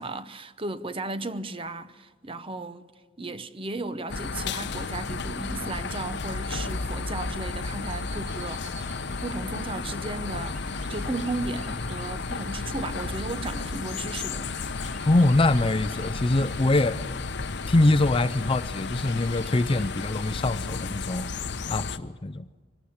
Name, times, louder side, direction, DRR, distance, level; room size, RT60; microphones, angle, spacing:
voice 1, 0.0-2.8 3.2-8.7 9.2-14.9, right 2 dB, 25° right, 0.8 m, -35 dB
sound 1, 4.1-22.0, left 4 dB, 60° left, 0.8 m, -33 dB
sound 2, 7.9-19.9, right 3 dB, 65° right, 2.7 m, -51 dB
sound 3, 8.7-16.6, equal, ahead, 2.6 m, -52 dB
voice 2, 15.0-17.1 17.7-21.3 21.7-22.4, left 2 dB, 25° left, 0.5 m, -23 dB
24.0 x 18.5 x 7.1 m
head